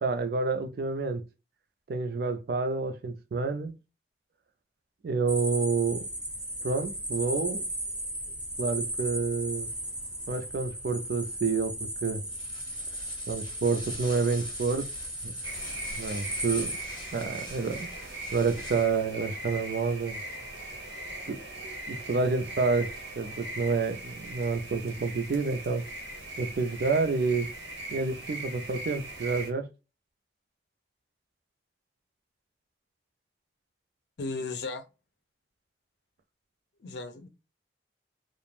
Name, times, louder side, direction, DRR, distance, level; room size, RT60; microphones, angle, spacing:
voice 1, 0.0-1.2 1.9-3.7 5.0-6.1 6.6-7.6 8.6-9.7 10.3-12.2 13.3-14.9 15.2-15.3 16.0-16.7 17.1-20.2 21.3-25.8 26.4-27.5 27.9-29.7, right 4 dB, 55° right, 0.4 m, -29 dB
sound 1, 5.3-16.8, right 1 dB, 5° right, 0.6 m, -36 dB
sound 2, 12.3-19.1, left 2 dB, 25° left, 0.7 m, -46 dB
sound 3, 15.4-29.5, right 1 dB, 85° right, 1.0 m, -40 dB
voice 2, 34.2-34.8 36.8-37.3, left 3 dB, 70° left, 0.5 m, -35 dB
2.4 x 2.0 x 3.1 m
head